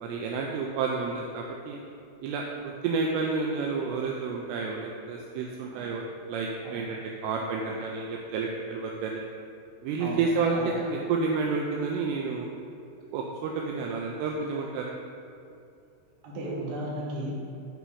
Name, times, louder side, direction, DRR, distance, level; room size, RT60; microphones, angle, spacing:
voice 1, 0.0-1.8 2.2-6.0 6.3-9.2 9.8-10.6 10.8-12.5 13.1-14.9, right 4 dB, 85° right, 0 dB, 2.6 m, -30 dB
voice 2, 16.2-17.4, right 1 dB, 60° right, -4 dB, 2.7 m, -35 dB
11.0 x 4.0 x 4.9 m, 2.6 s
omnidirectional pair, 5.1 m